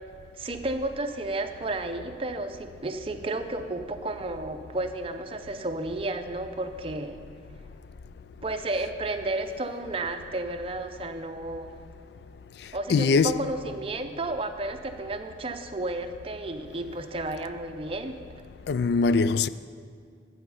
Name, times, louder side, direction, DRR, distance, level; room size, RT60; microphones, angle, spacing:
voice 1, 0.3-7.2 8.4-11.7 12.7-18.2, right 2 dB, 30° right, 0.6 m, -32 dB
voice 2, 12.9-13.3 18.7-19.5, left 4 dB, 70° left, 0.3 m, -21 dB
13.0 x 7.9 x 5.6 m
head